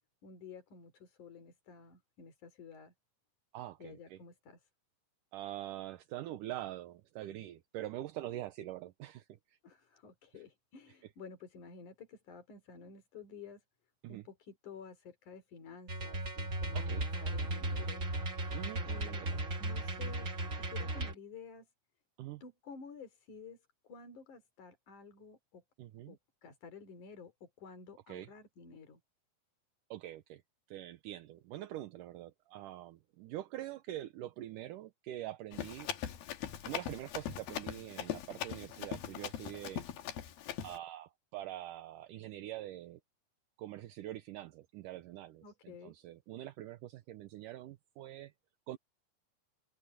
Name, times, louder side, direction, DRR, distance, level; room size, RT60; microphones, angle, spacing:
voice 1, 0.2-2.9 3.8-4.7 9.6-13.6 14.1-18.2 18.8-19.3 19.6-21.7 22.4-23.6 23.8-25.6 26.1-29.0 45.4-45.9, left 5 dB, 50° left, 5.0 m, -52 dB
voice 2, 3.5-4.2 5.3-9.6 14.0-14.2 16.7-17.1 18.5-19.4 22.2-22.4 25.8-26.2 28.1-28.3 29.9-30.4 30.7-35.9 36.7-39.8 40.6-43.0 43.6-48.3 48.7-48.8, right 14 dB, 70° right, 2.1 m, -44 dB
sound 1, 15.9-21.1, right 2 dB, 30° right, 1.7 m, -36 dB
Run, 35.5-40.8, left 10 dB, 70° left, 3.3 m, -41 dB
open air
omnidirectional pair, 4.6 m